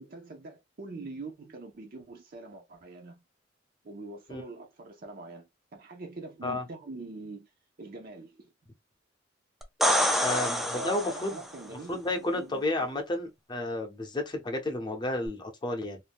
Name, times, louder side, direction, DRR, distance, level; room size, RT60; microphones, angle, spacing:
voice 1, 0.0-3.2 3.8-7.5 7.8-8.5 10.2-12.9, right 2 dB, 50° right, 0.6 m, -44 dB
sound 1, 9.6-11.5 15.3-15.4, equal, ahead, 0.4 m, -27 dB
voice 2, 10.2-11.3 11.9-16.0, left 2 dB, 25° left, 0.7 m, -32 dB
2.5 x 2.2 x 3.4 m
head